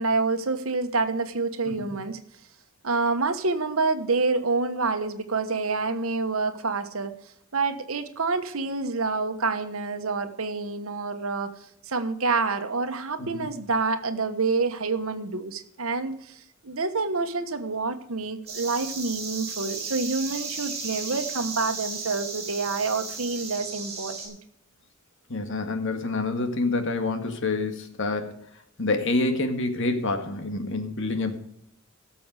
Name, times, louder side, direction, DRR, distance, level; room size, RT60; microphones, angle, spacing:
voice 1, 0.0-2.2 2.8-7.2 7.5-11.5 11.9-24.4, right 4 dB, 75° right, 8 dB, 1.3 m, -27 dB
sound 1, 18.5-24.3, right 4 dB, 30° right, 4.5 m, -35 dB
voice 2, 25.3-28.3 28.8-31.4, left 3 dB, 60° left, 7 dB, 1.9 m, -27 dB
17.0 x 7.0 x 4.9 m, 0.71 s
head